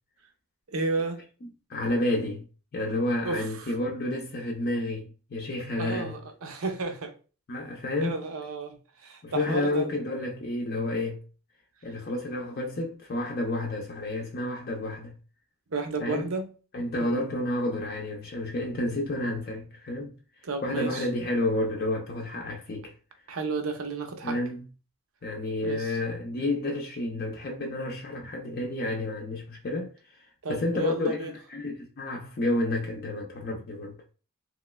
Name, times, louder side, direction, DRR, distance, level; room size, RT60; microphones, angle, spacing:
voice 1, 0.7-1.2 3.2-3.4 5.8-7.1 8.0-8.8 9.0-9.9 15.7-16.5 17.0-17.3 20.4-21.0 23.3-24.4 25.6-25.9 30.4-31.3, right 3 dB, 65° right, 0.6 m, -32 dB
voice 2, 1.7-2.5 2.7-6.2 7.5-8.2 9.2-11.2 11.8-15.1 16.0-16.3 16.7-20.1 20.6-22.9 24.2-24.7 25.2-29.9 30.5-34.0, left 1 dB, 45° left, 0.5 m, -30 dB
3.0 x 3.0 x 2.2 m
head